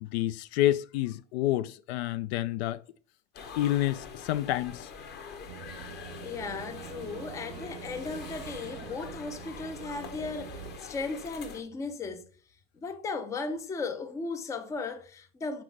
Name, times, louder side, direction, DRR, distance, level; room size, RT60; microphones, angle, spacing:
voice 1, 0.0-2.8 3.6-4.9, left 14 dB, 70° left, 0.5 m, -28 dB
sound 1, 3.3-11.6, left 6 dB, 30° left, 1.0 m, -44 dB
Boat Water vehicle / Engine, 5.5-10.8, right 11 dB, 80° right, 0.6 m, -45 dB
voice 2, 6.2-12.3 12.7-15.6, left 4 dB, 10° left, 0.4 m, -36 dB
6.0 x 4.9 x 3.3 m
supercardioid pair, 145°, 33 cm